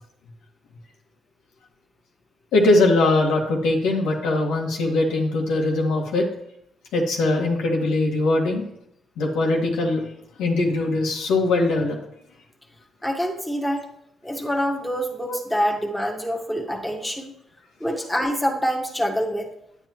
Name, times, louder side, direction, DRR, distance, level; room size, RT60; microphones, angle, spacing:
voice 1, 2.5-6.3 6.9-8.6 9.2-10.0 10.4-12.0 15.2-15.4, left 2 dB, 90° left, 0 dB, 1.8 m, -21 dB
voice 2, 13.0-13.8 14.2-17.3 17.8-19.5, equal, 5° left, 0 dB, 1.5 m, -26 dB
9.7 x 8.9 x 3.0 m, 0.76 s
cardioid pair, 90°, 0 cm